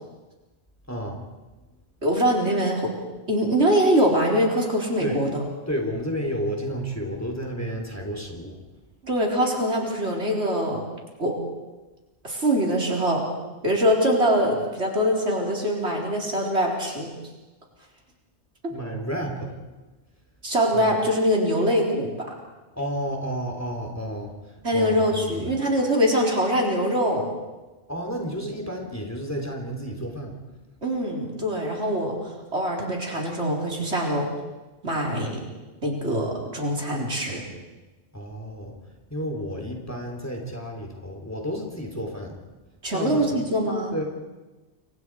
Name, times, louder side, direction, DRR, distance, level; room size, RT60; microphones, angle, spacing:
voice 1, 0.9-1.2 5.0-5.2 5.7-8.6 18.7-19.5 20.7-20.9 22.7-25.5 27.9-30.3 38.1-38.8 39.1-42.4 42.9-43.4 43.9-44.0, equal, 15° left, 2 dB, 3.6 m, -31 dB
voice 2, 2.0-2.9 3.3-5.3 9.0-10.8 11.2-11.4 12.2-13.2 13.6-17.1 20.4-22.1 24.6-27.3 30.8-32.2 32.5-34.3 34.8-35.4 35.8-37.4 42.8-43.9, equal, 70° right, -1 dB, 4.6 m, -23 dB
29.5 x 24.5 x 4.8 m, 1.2 s
omnidirectional pair, 1.2 m